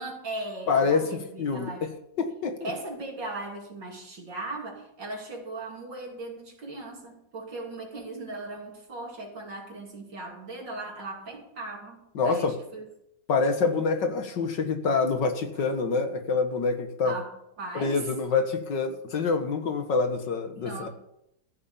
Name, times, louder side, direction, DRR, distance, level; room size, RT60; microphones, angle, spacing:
voice 1, 0.0-1.9 2.6-12.0 12.2-12.9 17.0-17.3 17.6-18.1 20.6-20.9, right 2 dB, 70° right, 0 dB, 3.7 m, -38 dB
voice 2, 0.7-1.1 1.4-1.9 2.2-2.7 12.2-12.5 13.3-17.2 17.7-20.9, left 4 dB, 70° left, 6 dB, 2.2 m, -26 dB
15.0 x 7.1 x 8.7 m, 0.79 s
omnidirectional pair, 2.0 m